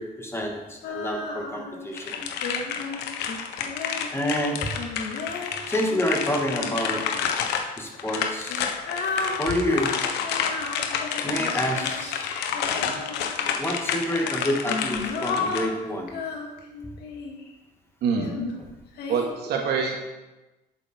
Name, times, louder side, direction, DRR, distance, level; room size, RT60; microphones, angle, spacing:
voice 1, 0.0-2.2 4.1-4.7 5.7-7.2 7.8-8.6 9.4-9.9 11.2-12.6 13.6-16.2, equal, 15° left, 1 dB, 2.3 m, -28 dB
Female singing, 0.8-1.9 2.4-7.2 8.0-13.6 14.3-17.5 18.1-19.3, left 4 dB, 75° left, 2.2 m, -34 dB
sound 1, 1.9-15.6, left 7 dB, 90° left, 1.2 m, -30 dB
voice 2, 19.1-20.0, right 5 dB, 75° right, 1 dB, 2.5 m, -25 dB
11.0 x 8.9 x 4.7 m, 1.1 s
cardioid pair, 110°, 17 cm